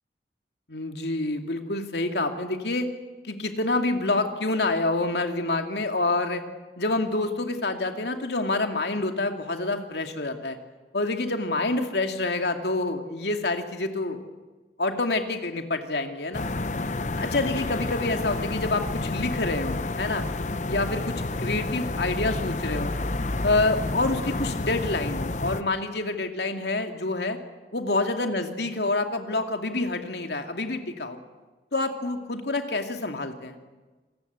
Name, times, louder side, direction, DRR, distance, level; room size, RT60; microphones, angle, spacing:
voice 1, 0.7-2.9 3.2-6.4 6.8-10.6 10.9-14.2 14.8-16.5 17.2-20.3 20.7-22.9 23.4-27.4 27.7-31.2 31.7-33.6, left 2 dB, 75° left, 5 dB, 2.4 m, -27 dB
sound 1, 16.3-25.6, left 2 dB, 40° left, 0.8 m, -30 dB
27.0 x 18.0 x 8.2 m, 1.3 s
head